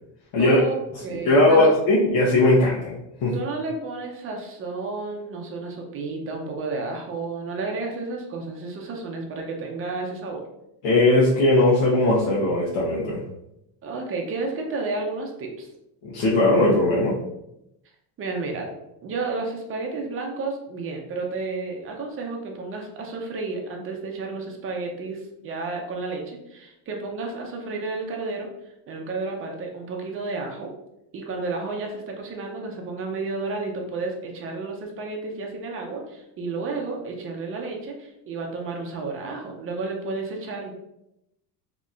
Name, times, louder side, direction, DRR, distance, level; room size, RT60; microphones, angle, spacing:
voice 1, 0.4-1.7 3.3-10.4 13.8-15.7 18.2-18.7 19.0-28.5 28.9-30.7 31.1-40.7, right 3 dB, 30° right, 1 dB, 0.6 m, -31 dB
voice 2, 1.1-2.9 3.2-3.3 10.8-13.2 16.0-17.2, left 2 dB, 80° left, -7 dB, 1.1 m, -19 dB
4.0 x 2.9 x 2.4 m, 0.86 s
cardioid pair, 145°, 47 cm